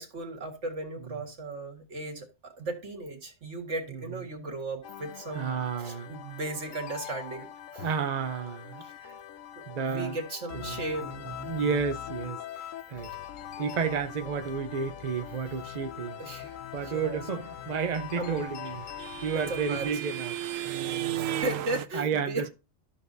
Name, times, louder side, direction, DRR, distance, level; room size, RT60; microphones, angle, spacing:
voice 1, 0.0-7.9 8.8-9.2 9.6-11.3 16.2-17.2 18.2-18.4 19.3-20.1 21.2-22.5, right 2 dB, 65° right, 2.1 m, -36 dB
sound 1, 4.8-19.9, left 10 dB, 85° left, 1.0 m, -42 dB
voice 2, 5.3-6.1 7.7-8.8 9.7-10.2 10.5-10.8 11.4-12.4 12.9-13.1 13.6-16.2 16.7-18.9 19.2-20.4 20.6-21.4 21.9-22.5, right 6 dB, 45° right, 0.6 m, -31 dB
sound 2, 18.0-21.9, right 11 dB, 85° right, 1.0 m, -34 dB
12.5 x 6.7 x 2.7 m
omnidirectional pair, 1.3 m